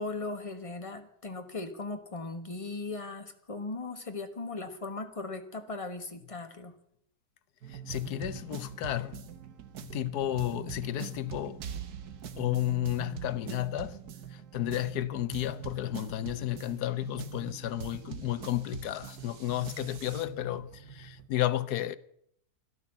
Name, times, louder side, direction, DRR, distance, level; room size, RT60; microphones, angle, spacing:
voice 1, 0.0-6.7, left 3 dB, 20° left, 1.5 m, -38 dB
sound 1, 7.6-21.3, right 8 dB, 85° right, 1.7 m, -43 dB
voice 2, 7.7-9.2 9.8-11.6 12.4-14.0 14.3-22.0, left 14 dB, 80° left, 1.3 m, -32 dB
12.5 x 12.5 x 7.0 m
omnidirectional pair, 1.6 m